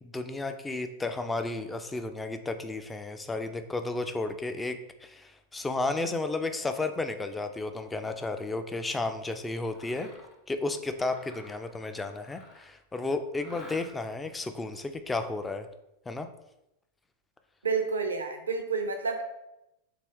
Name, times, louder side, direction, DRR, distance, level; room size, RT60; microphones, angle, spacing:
voice 1, 0.0-10.1 10.5-15.7 16.1-16.3, left 2 dB, 10° left, 8 dB, 0.3 m, -33 dB
Mechanisms, 9.7-10.4 10.9-12.8 13.3-14.2, left 1 dB, 50° left, 0.7 m, -51 dB
voice 2, 17.6-19.2, right 5 dB, 80° right, 5 dB, 0.5 m, -29 dB
3.4 x 2.5 x 3.3 m, 0.88 s
figure-of-eight pair, 90°, 0 cm